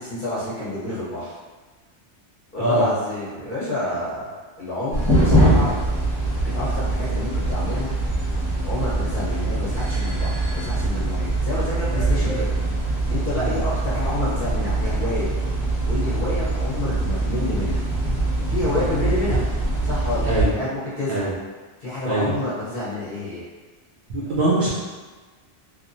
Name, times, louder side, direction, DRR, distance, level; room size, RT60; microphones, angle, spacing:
voice 1, 0.0-1.3 2.5-5.8 6.4-8.0 8.6-12.5 13.1-15.3 15.8-17.8 18.5-19.5 19.8-21.3 21.8-23.4, left 1 dB, 45° left, -9 dB, 1.0 m, -29 dB
sound 1, 4.9-20.5, right 2 dB, 15° left, 1.0 m, -23 dB
voice 2, 24.1-24.7, right 1 dB, 55° right, -9 dB, 0.6 m, -22 dB
2.9 x 2.0 x 2.6 m, 1.3 s
omnidirectional pair, 1.2 m